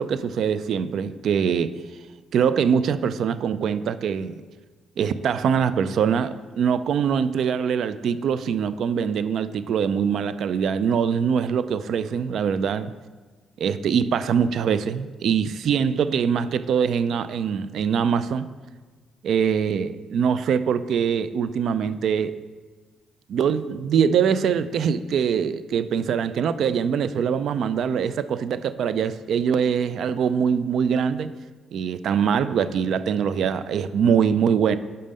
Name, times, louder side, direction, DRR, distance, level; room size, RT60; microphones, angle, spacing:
voice 1, 0.0-1.7 2.3-4.4 5.0-12.9 13.6-18.5 19.2-22.3 23.3-31.3 31.7-34.8, right 7 dB, 70° right, 14 dB, 0.3 m, -23 dB
5.3 x 5.2 x 5.4 m, 1.3 s
supercardioid pair, 70°, 0 cm